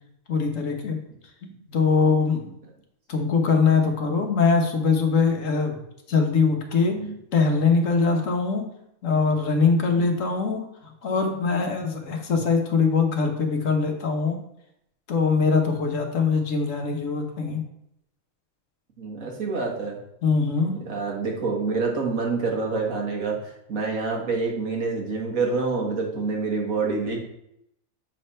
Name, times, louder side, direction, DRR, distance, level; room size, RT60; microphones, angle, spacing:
voice 1, 0.3-1.0 1.4-2.5 3.1-5.8 6.1-7.0 7.3-8.7 9.0-14.4 15.1-17.6 20.2-20.8, left 4 dB, 70° left, 3 dB, 1.4 m, -22 dB
voice 2, 19.0-20.0 20.8-27.2, right 4 dB, 75° right, -1 dB, 1.9 m, -27 dB
7.6 x 3.3 x 5.5 m, 0.77 s
omnidirectional pair, 1.4 m